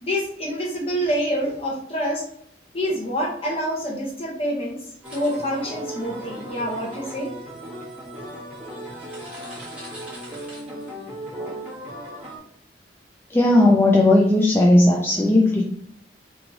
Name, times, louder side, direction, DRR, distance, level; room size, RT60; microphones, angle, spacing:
voice 1, 0.0-2.2 2.7-4.8 5.1-7.3, equal, 30° left, -2 dB, 1.2 m, -26 dB
sound 1, 5.0-12.4, right 1 dB, 5° right, 1.5 m, -36 dB
voice 2, 13.3-15.8, left 1 dB, 10° left, -2 dB, 0.4 m, -16 dB
3.5 x 3.3 x 3.8 m, 0.68 s
head